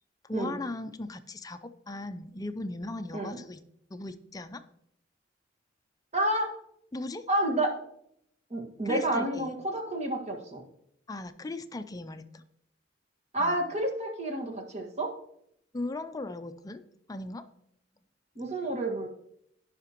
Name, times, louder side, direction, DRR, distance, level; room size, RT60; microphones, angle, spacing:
voice 1, 0.2-3.6 3.9-4.6 6.9-7.2 8.8-9.5 11.1-12.4 13.4-13.6 15.7-16.8 17.1-17.4, left 2 dB, 20° left, 10 dB, 0.4 m, -38 dB
voice 2, 6.1-6.5 7.3-7.8 8.5-10.6 13.3-15.1 18.3-19.1, right 1 dB, 35° right, 1 dB, 1.7 m, -29 dB
16.0 x 5.7 x 3.0 m, 0.73 s
head